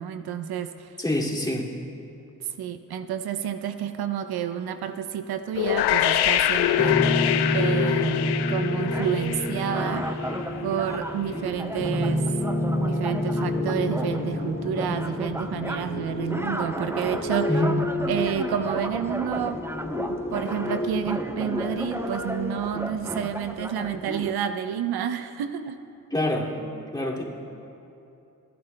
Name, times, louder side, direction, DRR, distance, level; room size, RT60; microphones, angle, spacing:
voice 1, 0.0-1.0 2.4-7.0 7.5-10.1 10.6-12.2 12.8-17.5 18.1-19.6 20.1-25.8, right 9 dB, 75° right, 9 dB, 0.6 m, -30 dB
voice 2, 1.0-1.7 17.5-17.7 26.1-26.6 26.9-27.2, left 1 dB, 10° left, -4 dB, 2.4 m, -25 dB
sound 1, 5.5-10.4, left 11 dB, 90° left, 0.5 m, -24 dB
sound 2, 6.8-22.4, left 1 dB, 35° left, 2.0 m, -29 dB
sound 3, 8.7-24.3, right 1 dB, 5° right, 0.6 m, -35 dB
29.5 x 10.5 x 2.2 m, 2.8 s
supercardioid pair, 50°, 38 cm